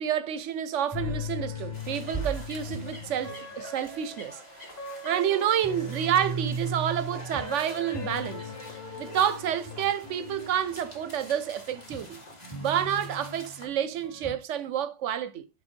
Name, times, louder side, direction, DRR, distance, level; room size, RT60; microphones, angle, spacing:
voice 1, 0.0-4.4 5.0-8.4 9.0-12.2 12.6-15.5, right 9 dB, 65° right, 0.8 m, -29 dB
sound 1, 0.9-11.3 11.7-13.7 14.0-14.4, equal, 15° left, 1.0 m, -37 dB
sound 2, 1.7-13.7, left 1 dB, 30° left, 1.8 m, -47 dB
7.0 x 3.6 x 4.3 m
omnidirectional pair, 1.5 m